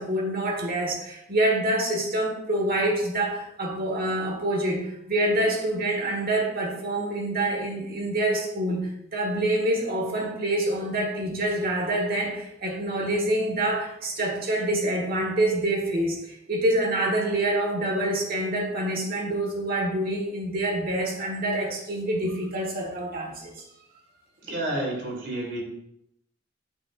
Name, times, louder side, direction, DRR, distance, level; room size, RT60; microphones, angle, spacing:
voice 1, 0.0-23.7, right 1 dB, 50° right, 0 dB, 1.5 m, -26 dB
voice 2, 24.4-25.6, right 1 dB, 80° right, -3 dB, 2.3 m, -30 dB
8.2 x 5.5 x 2.5 m, 0.81 s
head